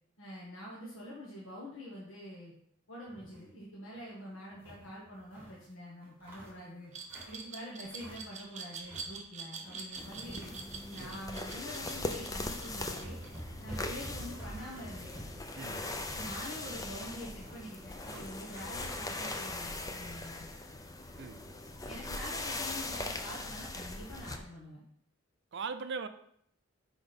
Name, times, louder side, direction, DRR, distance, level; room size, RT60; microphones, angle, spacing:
voice 1, 0.2-2.5 2.9-6.9 7.3-10.5 10.9-13.2 13.6-15.3 16.1-20.5 21.8-24.8, equal, 75° left, -5 dB, 1.5 m, -46 dB
sound 1, 3.1-3.5 3.9-4.0 4.3-5.6 6.0-7.5 7.8-8.4 8.7-9.1 9.4-11.1 11.5-11.6 12.3-12.4 12.7-18.8, right 1 dB, 10° right, 2.9 m, -49 dB
Glass, 6.9-13.8, right 5 dB, 35° right, 1.0 m, -45 dB
sound 2, 10.0-24.4, left 2 dB, 20° left, 0.6 m, -40 dB
voice 2, 25.5-26.1, right 5 dB, 60° right, 10 dB, 0.6 m, -39 dB
6.1 x 4.8 x 5.2 m, 0.69 s
head